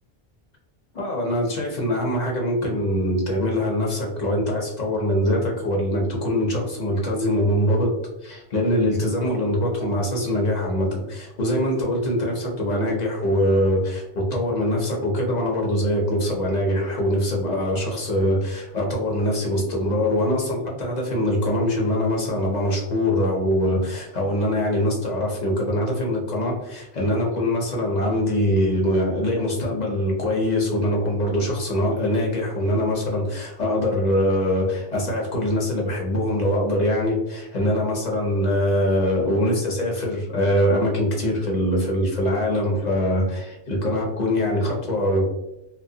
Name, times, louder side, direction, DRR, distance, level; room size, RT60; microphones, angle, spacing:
voice 1, 0.9-8.0 8.2-45.3, left 1 dB, 50° left, -1 dB, 0.7 m, -23 dB
2.4 x 2.1 x 2.6 m, 0.90 s
omnidirectional pair, 1.1 m